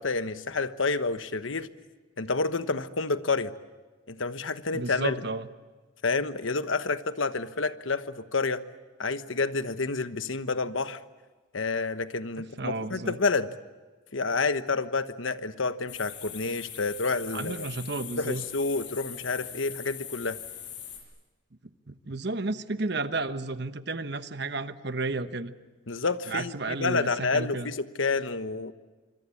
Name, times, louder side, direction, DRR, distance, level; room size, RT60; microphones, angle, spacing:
voice 1, 0.0-1.7 2.2-3.5 4.1-5.2 6.0-8.6 9.0-11.0 11.5-13.5 14.1-17.7 18.2-20.4 25.9-28.7, left 4 dB, 80° left, 11 dB, 1.2 m, -29 dB
voice 2, 4.7-5.5 12.6-13.2 17.3-18.4 21.9-25.5 26.3-27.7, right 3 dB, 55° right, 11 dB, 1.1 m, -32 dB
sound 1, 15.9-21.0, left 9 dB, 60° left, 7.2 m, -41 dB
26.0 x 26.0 x 8.7 m, 1.3 s
head